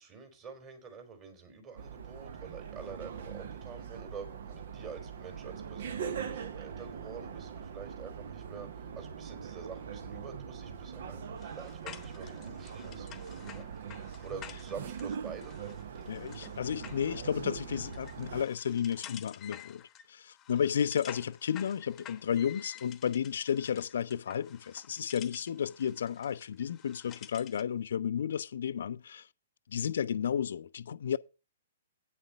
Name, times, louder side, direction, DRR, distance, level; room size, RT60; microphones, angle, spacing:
voice 1, 0.0-13.7 14.2-15.7, right 5 dB, 30° right, 3.5 m, -47 dB
sound 1, 1.8-18.5, right 7 dB, 60° right, 0.9 m, -42 dB
sound 2, 11.4-27.7, left 11 dB, 25° left, 1.0 m, -51 dB
voice 2, 16.1-19.8 20.1-29.3 29.7-31.2, left 8 dB, 65° left, 0.5 m, -32 dB
9.1 x 6.5 x 5.6 m
figure-of-eight pair, 120°, 0 cm